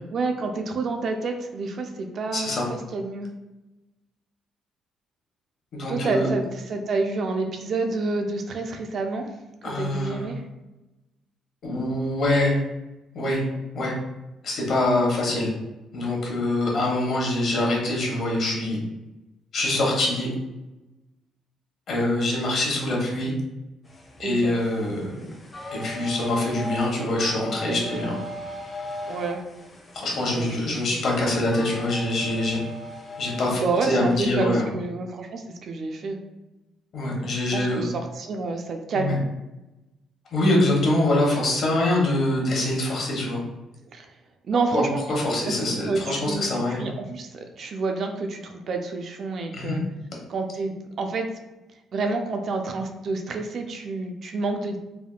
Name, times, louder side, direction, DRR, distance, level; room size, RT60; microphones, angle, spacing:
voice 1, 0.1-3.3 5.9-9.3 9.6-10.4 24.2-24.5 27.7-28.2 29.1-29.4 30.2-30.9 33.5-36.2 37.5-39.2 43.9-44.1 44.5-45.0 45.4-45.5 45.9-46.5 46.8-49.8 50.3-51.3 51.9-54.8, right 3 dB, 50° right, 4 dB, 0.3 m, -29 dB
voice 2, 2.3-2.6 5.7-6.3 9.6-10.3 11.6-12.6 13.1-13.4 13.7-13.9 14.4-15.5 15.9-18.8 19.5-20.3 21.9-23.3 24.2-25.2 25.7-28.1 29.9-32.6 33.2-33.6 33.9-34.7 36.9-37.8 38.9-39.2 40.3-43.4 44.7-46.8 49.5-49.8, left 1 dB, 50° left, -2 dB, 0.9 m, -24 dB
sound 1, 23.8-33.9, left 1 dB, 25° left, 0.5 m, -38 dB
3.4 x 2.2 x 2.3 m, 1.0 s
cardioid pair, 135°, 0 cm